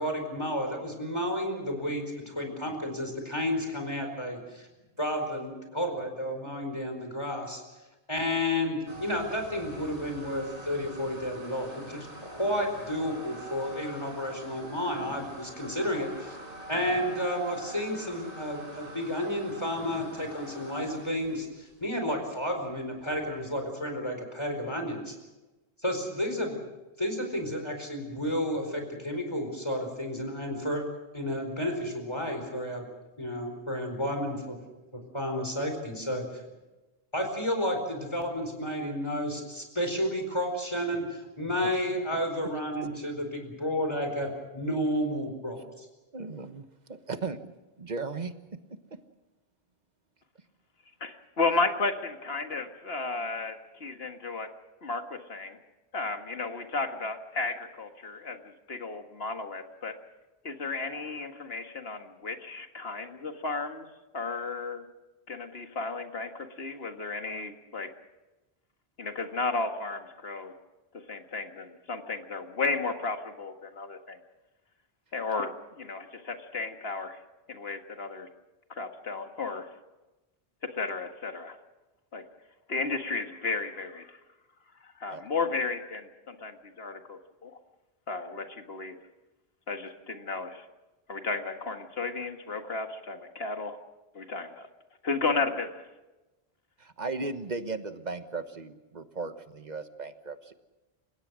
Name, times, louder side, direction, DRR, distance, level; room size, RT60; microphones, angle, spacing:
voice 1, 0.0-4.7 5.0-7.6 8.1-16.4 16.7-25.1 25.8-26.6 27.0-30.8 31.1-32.9 33.2-34.6 35.1-36.2 37.1-45.8, equal, 25° left, 4 dB, 4.6 m, -31 dB
sound 1, 8.9-23.6, right 1 dB, 60° right, 4.8 m, -45 dB
voice 2, 46.1-47.5 47.8-48.6 85.1-85.2 96.8-100.5, right 3 dB, 45° right, 9 dB, 1.3 m, -36 dB
voice 3, 51.0-54.5 54.8-55.6 55.9-59.9 60.4-63.9 64.1-64.9 65.3-67.9 69.0-70.5 71.1-74.2 75.1-77.2 77.5-78.3 78.7-79.7 80.7-81.6 82.1-82.2 82.7-84.2 84.8-87.5 88.1-89.0 89.7-90.7 91.1-93.8 94.1-94.7 95.0-95.9, left 3 dB, 75° left, 6 dB, 2.0 m, -33 dB
29.5 x 17.0 x 6.3 m, 1.1 s
omnidirectional pair, 1.1 m